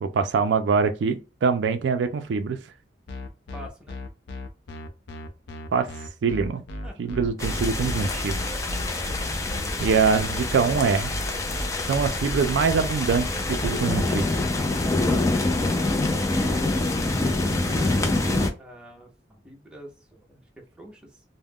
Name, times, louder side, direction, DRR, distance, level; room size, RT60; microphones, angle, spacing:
voice 1, 0.0-2.6 5.7-5.9 6.2-6.6 7.0-8.3 9.8-11.1 11.9-14.4, right 5 dB, 75° right, 0.3 m, -24 dB
sound 1, 3.1-15.7, left 1 dB, 70° left, 0.5 m, -35 dB
voice 2, 3.5-4.0 6.8-7.0 18.6-21.2, right 1 dB, 5° right, 0.7 m, -46 dB
sound 2, 7.4-18.5, left 2 dB, 15° left, 0.4 m, -26 dB
2.3 x 2.1 x 3.4 m
head